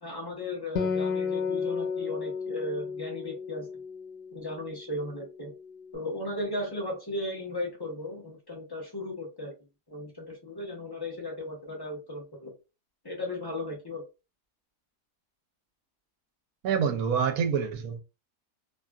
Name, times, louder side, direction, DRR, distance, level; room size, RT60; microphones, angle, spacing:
voice 1, 0.0-3.7 4.3-5.5 5.9-9.5 9.9-12.5 13.0-14.0, left 1 dB, 35° left, 0.3 m, -36 dB
Acoustic guitar, 0.8-4.5, left 5 dB, 90° left, 1.2 m, -32 dB
voice 2, 16.6-18.0, right 7 dB, 70° right, 1.0 m, -26 dB
2.7 x 2.5 x 2.3 m
omnidirectional pair, 1.7 m